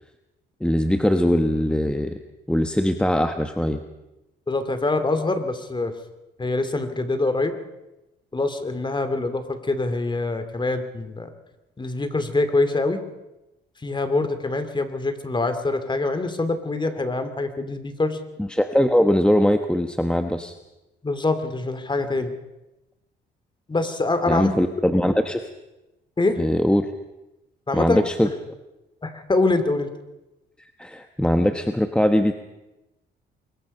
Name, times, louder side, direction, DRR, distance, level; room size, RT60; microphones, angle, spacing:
voice 1, 0.6-2.2 2.5-3.8 18.4-20.5 24.3-25.5 26.4-26.9 27.7-28.3 30.8-32.3, equal, 5° left, 7 dB, 1.2 m, -21 dB
voice 2, 4.5-5.9 6.4-7.5 8.3-11.3 11.8-13.0 13.8-18.2 21.0-22.3 23.7-24.5 26.2-26.4 27.7-28.0 29.0-29.9, left 2 dB, 25° left, 9 dB, 2.6 m, -24 dB
24.5 x 22.0 x 5.5 m, 0.98 s
cardioid pair, 90°, 20 cm